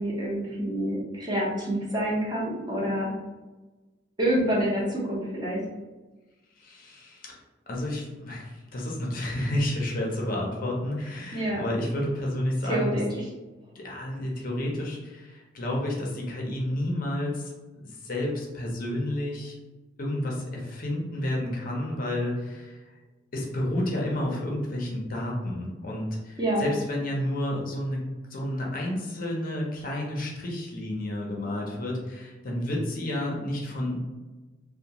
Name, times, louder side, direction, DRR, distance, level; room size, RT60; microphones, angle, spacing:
voice 1, 0.0-3.1 4.2-5.6 11.3-11.6 12.6-13.1 26.4-26.6, right 1 dB, 20° right, -5 dB, 0.7 m, -27 dB
voice 2, 6.6-7.3 7.7-13.0 13.7-19.6 20.0-22.8 23.3-34.0, left 1 dB, 45° left, -2 dB, 0.6 m, -30 dB
2.8 x 2.1 x 2.8 m, 1.2 s
head